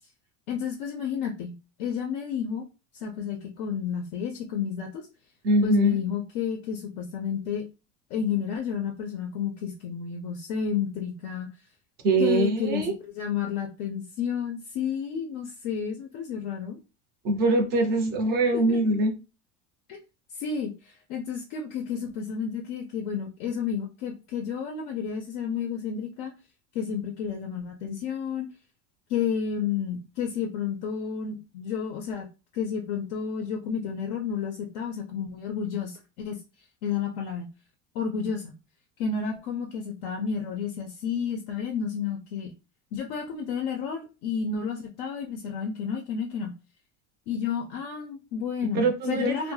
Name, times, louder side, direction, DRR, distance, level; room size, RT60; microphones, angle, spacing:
voice 1, 0.5-1.5 1.8-2.6 2.9-5.1 5.6-7.6 8.1-11.5 12.2-16.8 18.5-18.8 19.9-20.0 20.3-26.3 26.7-28.5 29.1-32.3 32.5-36.4 36.8-37.5 37.9-38.5 39.0-42.5 42.9-46.5 47.3-49.5, left 7 dB, 50° left, 0.4 m, -31 dB
voice 2, 5.4-6.0 12.0-12.9 17.2-19.1 48.7-49.5, right 2 dB, 25° right, 0.5 m, -23 dB
2.2 x 2.0 x 3.1 m
cardioid pair, 165°, 36 cm